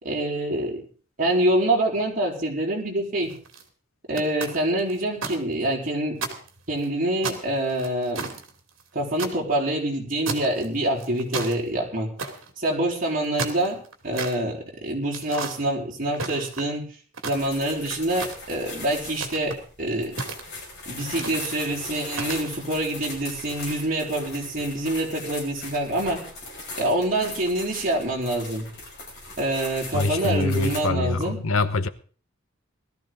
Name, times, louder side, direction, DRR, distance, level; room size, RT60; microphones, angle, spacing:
voice 1, 0.0-0.8 1.2-3.3 4.1-6.2 6.7-8.3 8.9-12.1 12.6-16.8 17.2-20.1 20.9-26.2 26.8-28.7 29.4-31.4, right 1 dB, 40° right, 4.2 m, -26 dB
sound 1, 3.2-3.6 4.2-5.4 5.7-5.8 6.2-6.9 7.2-9.3 10.2-10.6 11.0-11.6 12.2-12.5 13.1-14.3 15.1-15.6 16.1-16.8 17.1-17.7 18.2-18.6 19.1-19.6 20.2-20.7 21.2-21.5 22.1-22.5, right 4 dB, 65° right, 2.6 m, -33 dB
sound 2, 17.3-30.8, left 2 dB, 50° left, 6.1 m, -39 dB
voice 2, 29.9-31.9, left 3 dB, 75° left, 0.9 m, -24 dB
19.0 x 13.5 x 3.9 m
head